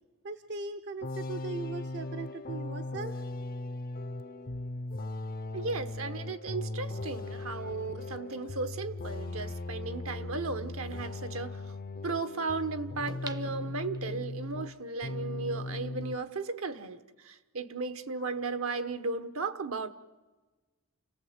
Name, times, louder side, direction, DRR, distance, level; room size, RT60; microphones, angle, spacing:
voice 1, 0.2-3.3, right 3 dB, 55° right, 8 dB, 0.8 m, -39 dB
sound 1, 1.0-14.7 15.0-16.2, left 2 dB, 45° left, 0.7 m, -38 dB
voice 2, 5.5-11.6 12.0-19.9, right 3 dB, 70° right, 9 dB, 1.2 m, -35 dB
sound 2, 13.1-14.4 14.9-15.0, right 3 dB, 20° right, 0.7 m, -46 dB
29.0 x 17.5 x 8.0 m, 1.2 s
head